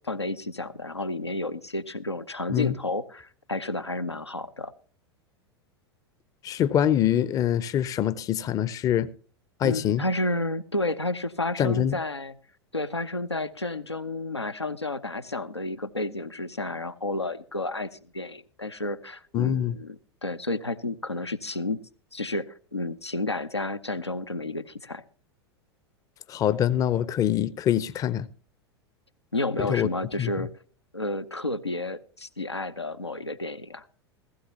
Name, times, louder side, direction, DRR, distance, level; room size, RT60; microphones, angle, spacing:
voice 1, 0.0-4.7 9.6-12.3 12.7-17.9 18.1-21.8 22.1-25.0 29.3-30.5 30.9-33.9, left 2 dB, 90° left, 0.6 m, -31 dB
voice 2, 6.4-9.1 9.6-10.0 11.6-12.0 19.3-19.8 26.3-28.3 29.6-29.9 30.2-30.5, left 10 dB, 25° left, 0.5 m, -24 dB
15.5 x 15.0 x 2.8 m
figure-of-eight pair, 90°, 14 cm